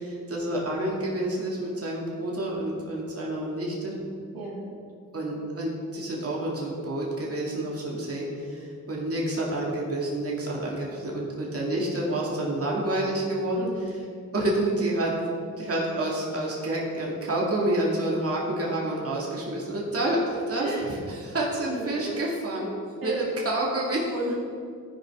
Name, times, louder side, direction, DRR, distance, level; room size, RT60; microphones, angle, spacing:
voice 1, 0.0-3.9 5.1-14.1 14.3-15.1 15.6-22.7 23.0-24.1, right 1 dB, 40° right, -4 dB, 2.1 m, -28 dB
voice 2, 21.6-22.2 23.0-23.2 24.1-24.3, right 1 dB, 75° right, -5 dB, 2.2 m, -33 dB
13.5 x 5.1 x 3.7 m, 2.3 s
cardioid pair, 60°, 35 cm